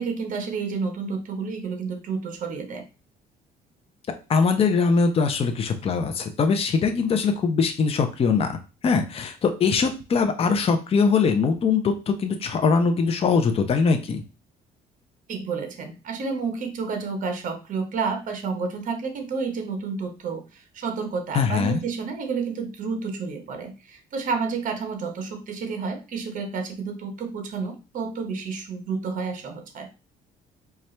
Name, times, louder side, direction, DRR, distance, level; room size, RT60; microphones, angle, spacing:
voice 1, 0.0-2.8 15.3-29.9, right 5 dB, 50° right, 5 dB, 1.0 m, -30 dB
voice 2, 4.3-8.5 8.8-14.2 21.3-21.8, left 5 dB, 35° left, 6 dB, 0.6 m, -22 dB
4.4 x 2.4 x 3.2 m, 0.31 s
cardioid pair, 110°, 17 cm